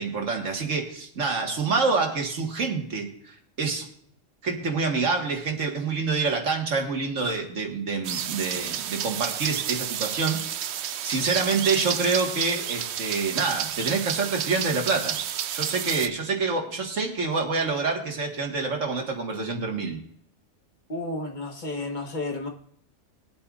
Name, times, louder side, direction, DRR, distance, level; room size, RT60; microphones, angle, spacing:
voice 1, 0.0-3.9 4.4-10.7 11.0-15.2 15.5-20.0, right 4 dB, 85° right, 2 dB, 2.0 m, -27 dB
sound 1, 8.0-16.1, right 10 dB, 65° right, 0.8 m, -31 dB
voice 2, 20.9-22.5, left 2 dB, 40° left, 2 dB, 1.4 m, -32 dB
20.5 x 8.6 x 2.4 m, 0.66 s
omnidirectional pair, 1.3 m